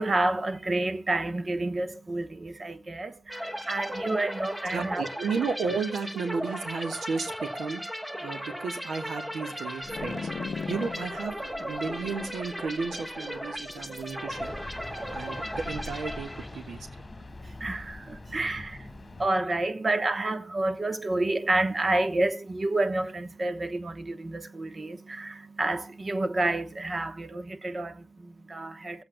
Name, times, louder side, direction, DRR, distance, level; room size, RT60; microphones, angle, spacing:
voice 1, 0.0-5.0 10.6-10.7 14.9-15.4 17.0-29.0, right 2 dB, 35° right, 1.0 m, -30 dB
sound 1, 3.3-16.9, equal, 15° right, 1.1 m, -37 dB
voice 2, 4.7-7.8 8.2-10.3 10.7-14.5 15.1-16.9, right 5 dB, 85° right, 1.4 m, -33 dB
sound 2, 9.8-14.5, left 5 dB, 65° left, 0.5 m, -39 dB
sound 3, 14.3-19.3, left 2 dB, 30° left, 1.7 m, -43 dB
23.0 x 7.9 x 2.2 m
cardioid pair, 70°, 0 cm